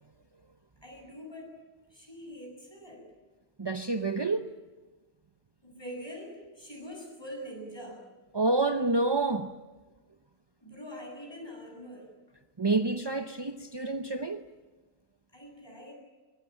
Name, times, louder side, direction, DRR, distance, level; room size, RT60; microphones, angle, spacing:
voice 1, 0.8-1.5 1.9-3.0 5.6-8.0 10.6-12.1 15.3-15.9, equal, 15° left, 7.9 m, -44 dB
voice 2, 3.6-4.5 8.3-9.5 12.6-14.4, right 3 dB, 30° right, 0.5 m, -28 dB
23.0 x 21.5 x 9.0 m
omnidirectional pair, 1.6 m